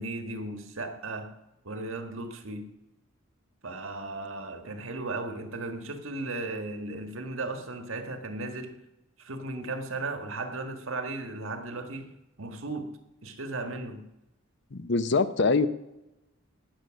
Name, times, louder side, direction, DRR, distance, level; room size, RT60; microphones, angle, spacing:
voice 1, 0.0-1.3 1.6-2.7 3.6-8.8 9.2-12.1 12.4-12.9 13.2-14.0, right 2 dB, 80° right, 1.6 m, -36 dB
voice 2, 14.7-15.7, left 3 dB, 60° left, 0.7 m, -24 dB
18.5 x 6.8 x 6.3 m
head